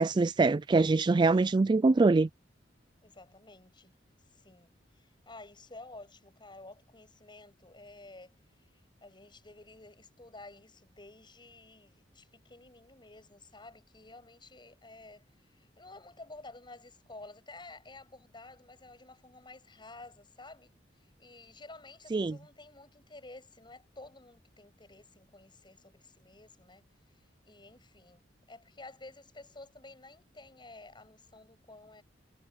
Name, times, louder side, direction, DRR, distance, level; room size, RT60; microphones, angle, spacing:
voice 1, 0.0-2.3 22.1-22.4, right 3 dB, 25° right, 0.3 m, -24 dB
voice 2, 3.0-4.0 4.3-26.8 27.1-28.2 28.5-32.0, left 2 dB, 25° left, 7.2 m, -52 dB
head